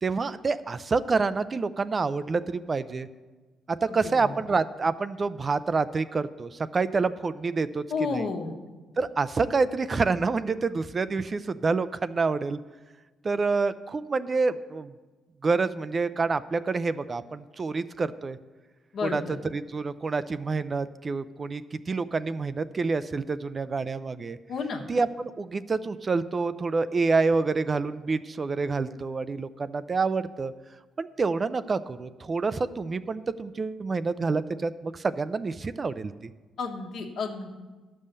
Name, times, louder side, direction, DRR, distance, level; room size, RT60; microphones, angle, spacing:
voice 1, 0.0-3.1 3.7-8.3 9.0-12.6 13.2-14.9 15.4-18.4 19.0-19.2 19.5-24.4 24.9-30.5 31.0-36.1, right 4 dB, 35° right, 13 dB, 0.4 m, -27 dB
voice 2, 7.9-8.5 18.9-19.4 24.5-24.9 36.6-37.5, left 4 dB, 65° left, 3 dB, 1.3 m, -31 dB
11.5 x 5.5 x 6.7 m, 1.3 s
cardioid pair, 90°, 0 cm